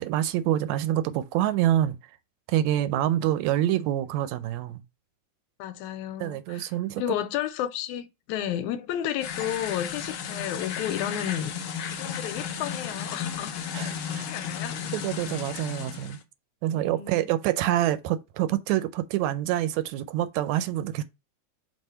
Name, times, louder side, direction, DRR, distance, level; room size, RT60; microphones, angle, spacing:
voice 1, 0.0-2.0 2.5-4.8 6.2-7.0 13.7-14.3 14.9-16.2 16.6-21.0, right 12 dB, 80° right, 1.8 m, -26 dB
voice 2, 5.6-6.7 7.0-11.6 11.9-13.6 14.1-14.8 16.7-17.3, left 11 dB, 90° left, 2.0 m, -32 dB
sound 1, 9.2-16.2, left 8 dB, 70° left, 1.2 m, -34 dB
5.4 x 3.1 x 5.5 m
omnidirectional pair, 3.3 m